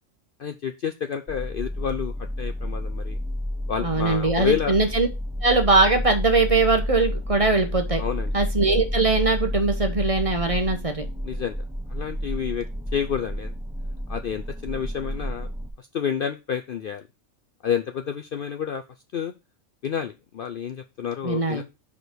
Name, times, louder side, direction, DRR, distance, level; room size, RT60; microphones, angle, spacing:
voice 1, 0.4-3.2 3.7-4.7 8.0-8.3 11.2-11.6 11.9-12.7 12.9-13.5 14.1-15.5 15.8-17.0 17.6-18.8 19.1-19.3 19.8-21.6, left 8 dB, 60° left, 8 dB, 0.6 m, -29 dB
sound 1, 1.3-15.7, left 1 dB, 5° right, 0.8 m, -30 dB
voice 2, 3.8-5.1 5.4-8.0 8.3-11.1 21.2-21.6, right 3 dB, 30° right, 5 dB, 1.0 m, -21 dB
5.0 x 4.9 x 6.1 m, 0.26 s
omnidirectional pair, 1.4 m